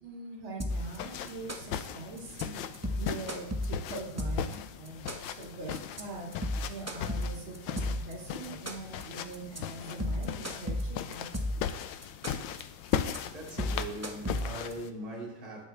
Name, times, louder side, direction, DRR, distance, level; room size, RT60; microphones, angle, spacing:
voice 1, 0.0-6.3 6.7-11.4, right 2 dB, 85° right, 2.8 m, -42 dB
sound 1, 0.6-1.0 1.3-1.9 2.2-2.4 2.7-4.5 4.9-5.4 5.7-6.0 6.3-8.1 8.4-9.0 9.3-9.6 9.9-11.7 12.0-12.6 12.9-13.2 13.5-14.7, left 1 dB, 15° right, 0.5 m, -33 dB
sound 2, 0.7-14.9, left 9 dB, 75° left, 1.3 m, -38 dB
voice 2, 12.4-15.6, right 1 dB, 45° right, 3.0 m, -42 dB
20.0 x 7.0 x 3.4 m
omnidirectional pair, 2.2 m